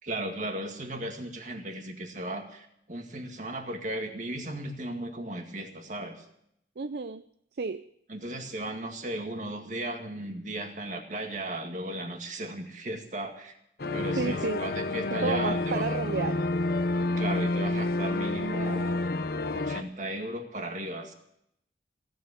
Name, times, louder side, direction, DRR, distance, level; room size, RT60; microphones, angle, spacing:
voice 1, 0.0-6.3 8.1-13.6 13.9-16.0 17.2-19.0 19.5-21.1, right 1 dB, 45° right, 2.1 m, -36 dB
voice 2, 6.8-7.2 7.6-7.9 13.8-14.6 15.2-16.5, right 4 dB, 65° right, 0.5 m, -32 dB
sound 1, 13.8-19.8, left 2 dB, 60° left, 0.7 m, -29 dB
17.0 x 8.4 x 8.5 m
head